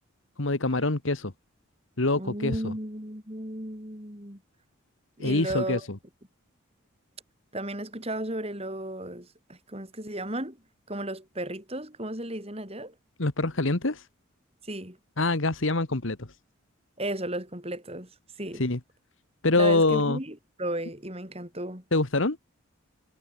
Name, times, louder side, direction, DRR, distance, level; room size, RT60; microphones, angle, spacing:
voice 1, 0.4-1.3 2.0-2.7 5.2-5.8 13.2-14.1 15.2-16.3 18.6-18.8 19.4-20.2 21.9-22.4, left 2 dB, 65° left, 1.6 m, -25 dB
voice 2, 2.1-4.4 5.2-5.9 7.5-10.6 10.9-12.9 14.6-15.0 17.0-18.1 18.4-18.6 19.6-21.8, right 1 dB, 30° right, 6.2 m, -34 dB
head